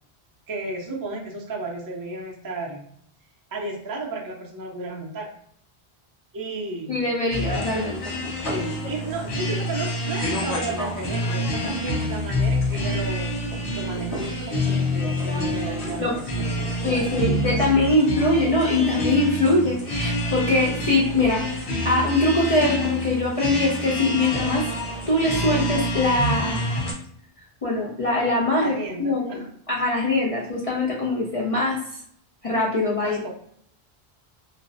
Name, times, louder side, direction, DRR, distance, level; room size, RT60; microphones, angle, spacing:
voice 1, 0.5-2.8 3.5-5.3 6.3-7.0 8.5-13.3 13.8-17.8 20.5-20.6 28.6-29.5 33.0-33.3, right 2 dB, 35° right, -2 dB, 0.3 m, -33 dB
voice 2, 6.9-8.0 16.0-16.2 16.8-24.6 25.1-26.6 27.6-29.4 29.7-31.8 32.4-33.2, left 2 dB, 55° left, -4 dB, 0.4 m, -22 dB
sound 1, 7.3-26.9, left 1 dB, 90° left, 1.0 m, -27 dB
2.5 x 2.0 x 2.5 m, 0.66 s
omnidirectional pair, 1.1 m